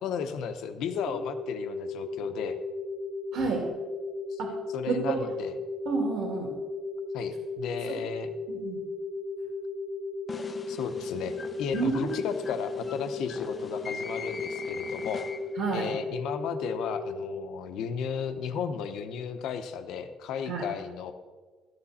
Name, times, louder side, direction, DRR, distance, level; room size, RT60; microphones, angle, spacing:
voice 1, 0.0-2.6 4.3-4.4 4.7-5.6 7.1-8.3 10.7-15.2 15.7-21.1, left 7 dB, 75° left, 9 dB, 0.9 m, -34 dB
sound 1, 0.9-17.5, left 3 dB, 40° left, 1.0 m, -36 dB
voice 2, 3.3-3.6 4.4-4.5 4.9-5.3 5.9-6.5 8.5-8.8 11.7-12.1 15.6-15.9 20.5-20.7, right 4 dB, 70° right, 1 dB, 2.4 m, -29 dB
sound 2, 10.3-15.7, left 5 dB, 25° left, 0.6 m, -42 dB
14.0 x 9.8 x 4.3 m, 1.4 s
cardioid pair, 160°, 0 cm